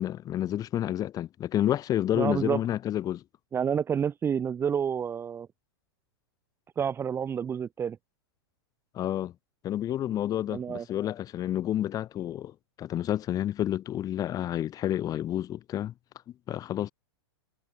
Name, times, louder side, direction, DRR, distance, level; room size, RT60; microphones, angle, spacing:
voice 1, 0.0-3.2 8.9-9.3 9.6-12.5 12.8-15.9 16.5-16.9, left 12 dB, 30° left, 4.1 m, -29 dB
voice 2, 2.1-2.6 3.5-5.5 6.8-8.0 10.5-10.8, right 7 dB, 20° right, 1.4 m, -29 dB
hypercardioid pair, 130°, 13 cm